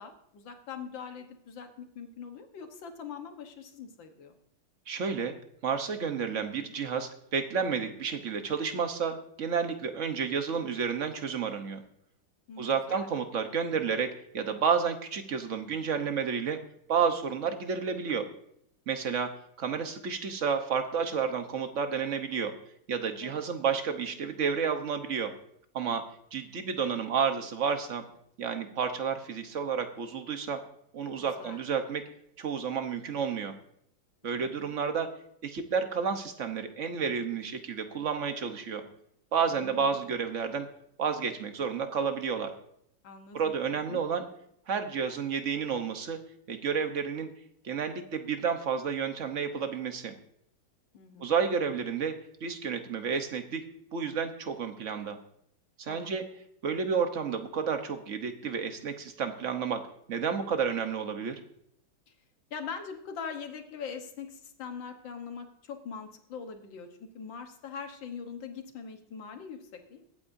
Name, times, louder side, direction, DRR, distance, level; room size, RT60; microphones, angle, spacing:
voice 1, 0.0-4.4 12.5-13.1 23.2-23.4 31.2-31.6 34.2-34.7 39.4-40.1 43.0-44.0 50.9-51.4 55.9-56.1 62.5-70.0, left 6 dB, 75° left, 5 dB, 2.0 m, -42 dB
voice 2, 4.9-5.3 5.6-11.8 12.6-16.6 16.9-18.3 18.9-19.3 19.6-22.5 22.9-25.3 25.7-26.0 26.3-28.0 28.4-30.6 30.9-32.0 32.4-33.5 34.2-35.1 35.4-38.8 39.3-40.7 41.0-42.5 43.3-44.3 44.7-46.2 46.5-47.3 47.6-50.1 51.2-52.2 52.4-53.6 53.9-55.2 55.8-56.2 56.6-61.4, right 6 dB, 45° right, 7 dB, 1.1 m, -31 dB
22.0 x 8.6 x 2.6 m, 0.71 s
omnidirectional pair, 2.1 m